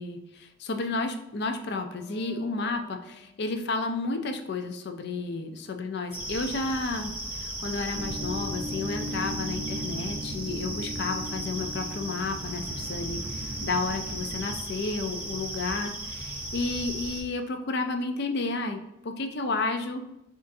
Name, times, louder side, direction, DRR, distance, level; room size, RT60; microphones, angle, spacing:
voice 1, 0.0-20.0, left 3 dB, 55° left, 6 dB, 0.4 m, -32 dB
Wind instrument woodwind instrument, 1.7-6.8, left 2 dB, 80° left, 1.4 m, -58 dB
sound 1, 6.1-17.2, right 1 dB, 10° right, 0.5 m, -36 dB
sound 2, 7.9-14.6, equal, 55° right, 0.8 m, -37 dB
6.3 x 2.5 x 2.6 m, 0.89 s
head